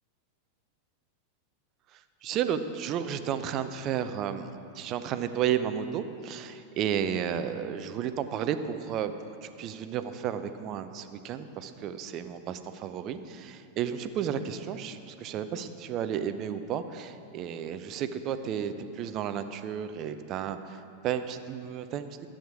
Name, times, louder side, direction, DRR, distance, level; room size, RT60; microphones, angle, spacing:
voice 1, 2.2-4.5 4.8-9.1 9.4-22.3, right 9 dB, 35° right, 10 dB, 0.6 m, -32 dB
12.0 x 8.8 x 4.8 m, 2.6 s
figure-of-eight pair, 90°, 0 cm